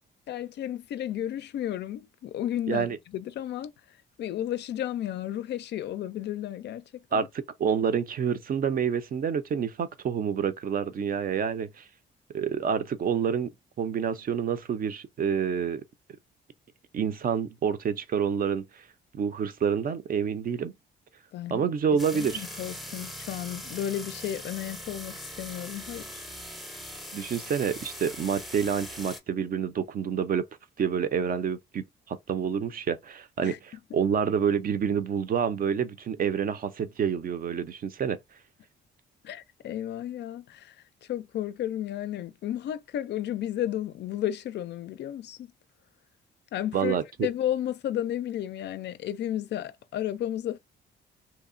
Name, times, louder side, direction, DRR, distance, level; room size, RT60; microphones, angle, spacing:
voice 1, 0.3-7.3 21.3-21.7 22.1-26.2 33.4-33.6 39.2-40.8 41.1-45.5 46.5-50.6, left 11 dB, 60° left, 0.4 m, -33 dB
voice 2, 7.6-11.8 12.3-13.5 13.8-15.8 16.9-18.6 19.1-20.7 21.5-22.4 27.1-30.4 30.8-38.2 46.7-47.0, right 7 dB, 45° right, 0.5 m, -28 dB
sound 1, 22.0-29.2, equal, ahead, 0.6 m, -41 dB
2.8 x 2.0 x 2.5 m
cardioid pair, 90°, 20 cm